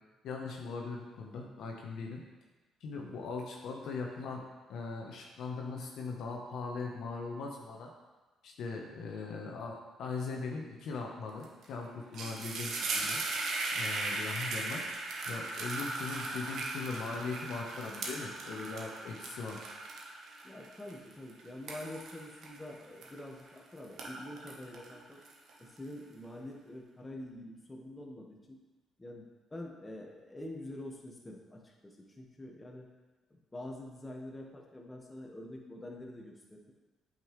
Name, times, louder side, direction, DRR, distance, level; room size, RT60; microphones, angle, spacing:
voice 1, 0.2-2.2 2.8-4.4 4.7-7.9 8.4-13.2 13.7-14.8 15.2-19.6, left 4 dB, 70° left, 1 dB, 0.9 m, -40 dB
sound 1, 11.4-11.7 11.9-23.5 23.8-25.8, right 3 dB, 70° right, 1.1 m, -38 dB
voice 2, 20.4-25.2 25.6-28.6 29.0-32.9 33.5-36.7, left 1 dB, 20° left, 0 dB, 1.4 m, -46 dB
8.6 x 5.3 x 3.2 m, 1.2 s
supercardioid pair, 60°, 0 cm